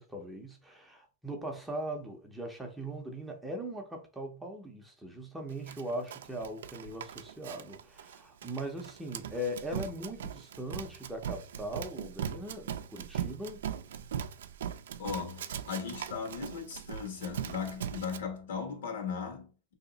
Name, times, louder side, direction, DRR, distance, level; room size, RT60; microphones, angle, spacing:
voice 1, 0.0-13.7, right 1 dB, 5° right, 0.6 m, -40 dB
Run, 5.7-18.2, right 8 dB, 85° right, 0.4 m, -40 dB
voice 2, 15.0-19.7, left 6 dB, 75° left, 1.3 m, -37 dB
3.0 x 2.8 x 3.9 m
supercardioid pair, 160°, 0 cm